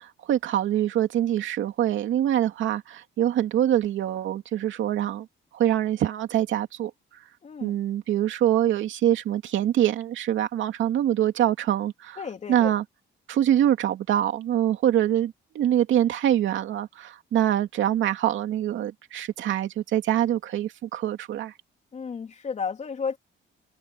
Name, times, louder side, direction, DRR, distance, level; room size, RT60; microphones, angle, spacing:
voice 1, 0.0-5.3 5.5-6.9 7.6-12.2 12.5-12.8 13.3-21.5, right 11 dB, 70° right, 2.6 m, -24 dB
voice 2, 7.4-7.8 12.2-12.7 21.9-23.2, left 6 dB, 35° left, 3.3 m, -33 dB
cardioid pair, 145°, 21 cm